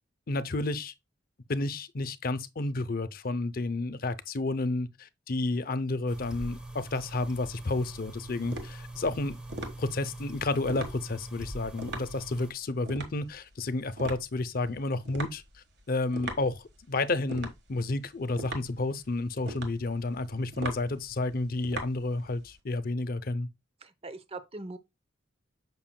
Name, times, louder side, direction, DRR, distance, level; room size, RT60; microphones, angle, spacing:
voice 1, 0.3-0.9 1.5-9.4 9.8-15.4 15.9-16.6 16.9-23.5, left 2 dB, 50° left, 0.6 m, -31 dB
sound 1, 6.1-12.5, right 1 dB, 5° right, 0.9 m, -43 dB
sound 2, 7.0-22.6, right 2 dB, 60° right, 1.5 m, -42 dB
voice 2, 23.8-24.8, right 2 dB, 30° right, 0.7 m, -41 dB
7.3 x 6.0 x 2.2 m
head